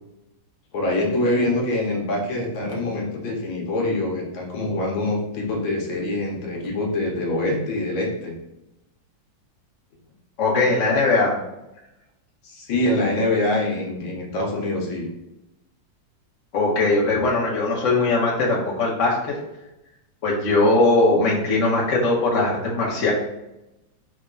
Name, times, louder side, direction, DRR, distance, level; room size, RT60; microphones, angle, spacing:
voice 1, 0.7-8.4 12.4-15.1, left 1 dB, 90° left, -1 dB, 1.8 m, -24 dB
voice 2, 10.4-11.3 16.5-19.3 20.2-23.1, left 2 dB, 45° left, -4 dB, 1.3 m, -20 dB
3.6 x 3.5 x 3.8 m, 0.92 s
omnidirectional pair, 2.0 m